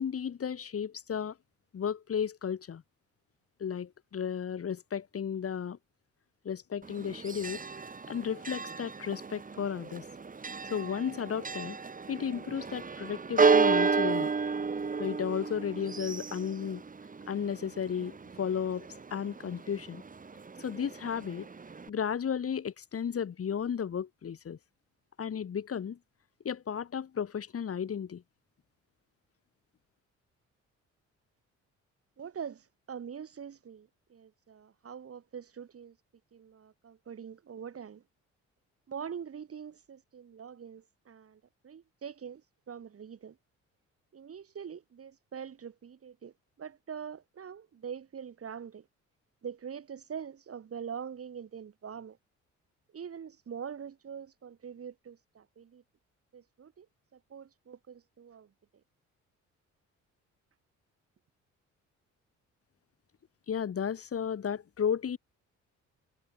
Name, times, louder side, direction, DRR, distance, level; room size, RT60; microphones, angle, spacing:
voice 1, 0.0-1.4 1.7-2.8 3.6-5.8 6.4-7.6 8.1-10.1 10.7-11.8 12.1-14.3 15.0-16.8 17.3-20.0 20.6-21.5 21.9-24.6 25.2-26.0 26.4-28.2 63.5-65.2, left 7 dB, 50° left, 4.0 m, -34 dB
Church bell, 6.8-21.9, right 4 dB, 25° right, 1.9 m, -32 dB
voice 2, 32.2-35.9 36.3-38.0 38.9-42.4 42.7-43.4 44.1-48.9 49.4-52.2 52.9-55.8 56.3-56.9 57.1-58.5, right 7 dB, 50° right, 5.3 m, -44 dB
cardioid pair, 90°, 30 cm